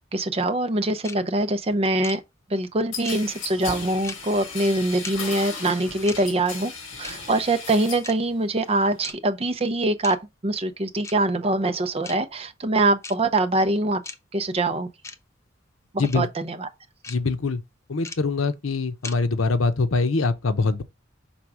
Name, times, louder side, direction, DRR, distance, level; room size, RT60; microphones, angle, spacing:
voice 1, 0.1-2.2 2.5-6.7 7.0-10.2 10.4-14.0 14.3-14.9 15.9-16.7, right 2 dB, 30° right, 0.6 m, -23 dB
sound 1, 1.0-1.2 2.0-2.2 3.0-3.2 4.0-4.2 5.0-5.2 6.0-6.2 7.0-7.2 8.0-8.1 9.0-9.2 10.0-10.2 11.0-11.2 12.0-12.2 13.0-13.2 14.0-14.2 15.0-15.2 16.0-16.2 17.0-17.2 18.0-18.2 19.0-19.2, left 3 dB, 15° left, 0.6 m, -36 dB
sound 2, 2.9-8.1 8.5-9.1, left 5 dB, 70° left, 1.8 m, -36 dB
voice 2, 17.1-17.6 17.9-20.8, left 3 dB, 85° left, 0.8 m, -23 dB
5.9 x 3.8 x 4.8 m
head